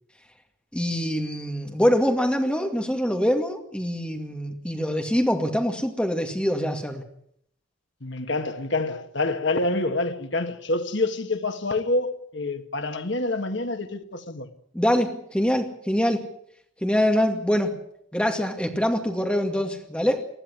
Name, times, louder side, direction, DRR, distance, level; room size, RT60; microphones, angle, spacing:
voice 1, 0.7-7.1 14.7-16.2 16.8-17.8 18.1-20.2, equal, 5° left, 2.2 m, -24 dB
voice 2, 8.0-14.5, left 2 dB, 60° left, 1.8 m, -27 dB
20.0 x 14.5 x 9.6 m
head